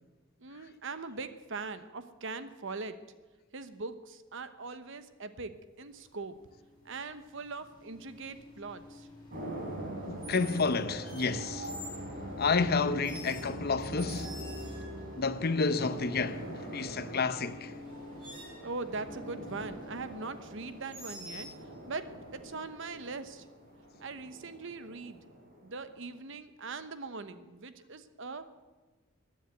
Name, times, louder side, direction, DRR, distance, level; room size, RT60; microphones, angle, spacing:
voice 1, 0.4-3.0 3.5-6.4 6.8-9.1 18.6-21.5 21.9-23.5 24.0-25.2 25.6-28.4, right 3 dB, 65° right, 1.0 m, -41 dB
sound 1, 5.9-24.9, left 2 dB, 25° left, 4.3 m, -52 dB
sound 2, 5.9-6.2 8.0-8.3 10.2-10.7 11.0-12.1 13.0-15.1 17.3-17.4 17.8-18.7 20.9-21.6, equal, 25° right, 5.0 m, -48 dB
sound 3, 9.3-26.1, right 1 dB, 45° right, 3.7 m, -43 dB
voice 2, 10.1-11.7 12.4-14.3 15.2-16.5 16.7-17.7, left 4 dB, 50° left, 0.8 m, -30 dB
16.0 x 10.0 x 8.0 m
head